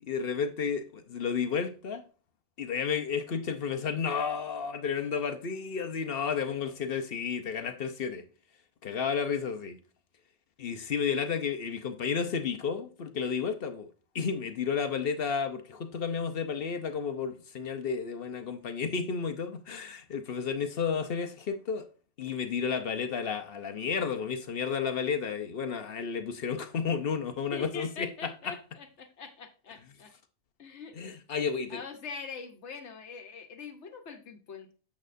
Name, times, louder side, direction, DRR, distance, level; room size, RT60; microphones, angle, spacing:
voice 1, 0.0-2.1 2.6-8.2 8.8-9.8 10.6-13.9 14.1-21.9 22.2-28.1 31.0-31.8, left 6 dB, 55° left, 0.9 m, -32 dB
voice 2, 27.5-30.1 30.6-31.0 31.7-34.7, left 5 dB, 75° left, 1.2 m, -43 dB
8.6 x 7.2 x 2.5 m
omnidirectional pair, 1.2 m